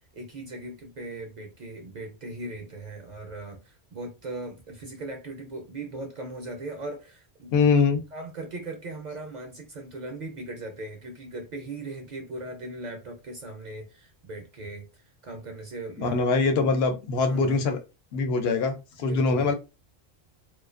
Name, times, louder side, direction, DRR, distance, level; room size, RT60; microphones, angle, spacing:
voice 1, 0.1-7.8 8.1-16.3 17.3-17.6 19.0-19.5, right 2 dB, 55° right, 0.5 m, -39 dB
voice 2, 7.5-8.0 16.0-17.8 18.1-19.5, left 4 dB, 70° left, 0.8 m, -23 dB
2.4 x 2.1 x 2.4 m
omnidirectional pair, 1.1 m